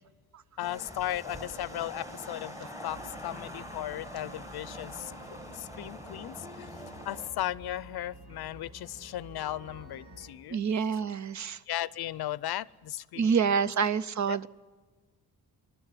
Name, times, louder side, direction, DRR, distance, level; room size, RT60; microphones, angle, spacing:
voice 1, 0.6-5.1 5.5-6.7 7.0-10.6 11.7-13.7 14.3-14.5, left 13 dB, 90° left, 20 dB, 0.6 m, -36 dB
sound 1, 0.6-7.3, equal, 10° right, 1.8 m, -44 dB
sound 2, 2.9-10.3, equal, 85° right, 6.7 m, -51 dB
voice 2, 10.5-11.6 13.2-14.5, right 6 dB, 50° right, 16 dB, 0.7 m, -27 dB
26.0 x 12.0 x 9.8 m, 1.4 s
wide cardioid pair, 150°, 37 cm